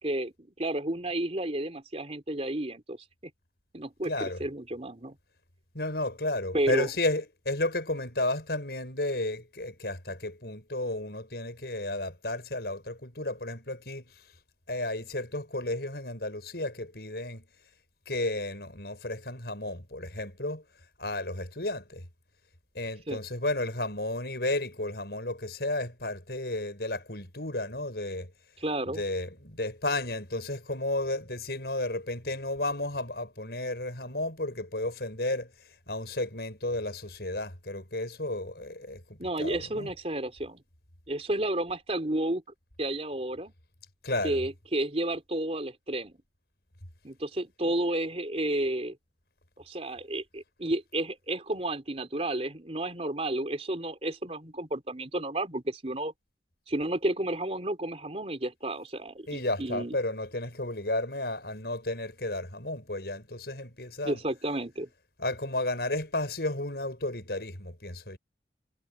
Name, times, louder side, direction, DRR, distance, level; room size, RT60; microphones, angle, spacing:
voice 1, 0.0-3.0 3.7-5.2 6.5-6.9 23.1-23.2 28.6-29.0 39.2-40.6 41.1-42.4 42.8-43.5 44.2-46.1 47.0-49.0 49.7-56.1 56.7-60.0 64.0-64.9, right 1 dB, 35° right, 3.5 m, -31 dB
voice 2, 4.1-4.4 5.7-14.1 14.7-17.4 18.1-20.6 21.0-22.1 22.7-28.3 29.0-35.5 35.9-39.9 44.0-44.4 59.3-64.2 65.2-68.2, left 2 dB, 65° left, 6.4 m, -33 dB
head